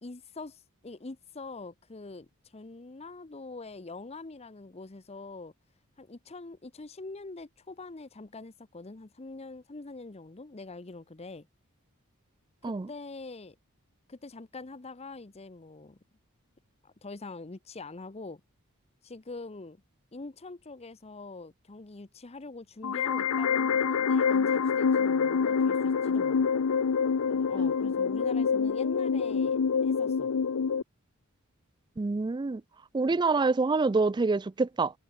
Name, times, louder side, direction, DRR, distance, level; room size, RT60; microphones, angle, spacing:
voice 1, 0.0-5.5 6.0-11.5 12.6-13.6 14.1-16.0 16.8-18.4 19.0-19.8 20.1-26.6 27.3-30.3, left 3 dB, 30° left, 0.7 m, -44 dB
sound 1, 22.8-30.8, left 6 dB, 90° left, 0.6 m, -26 dB
voice 2, 32.0-32.6 32.9-34.9, right 3 dB, 20° right, 0.3 m, -26 dB
head